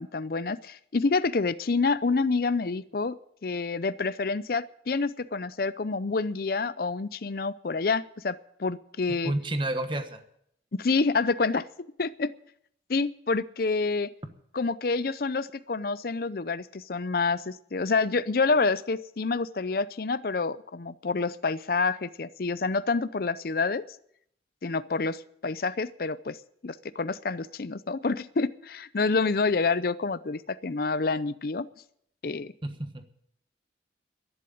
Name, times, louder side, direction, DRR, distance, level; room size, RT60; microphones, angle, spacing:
voice 1, 0.0-3.2 3.4-9.3 10.7-11.7 12.0-12.3 12.9-14.1 14.5-23.9 24.6-26.4 26.6-31.7 32.2-32.5, left 4 dB, 55° left, 15 dB, 0.5 m, -28 dB
voice 2, 9.1-10.2 32.6-33.1, right 1 dB, 25° right, 8 dB, 1.3 m, -31 dB
11.5 x 11.0 x 8.6 m, 0.70 s
head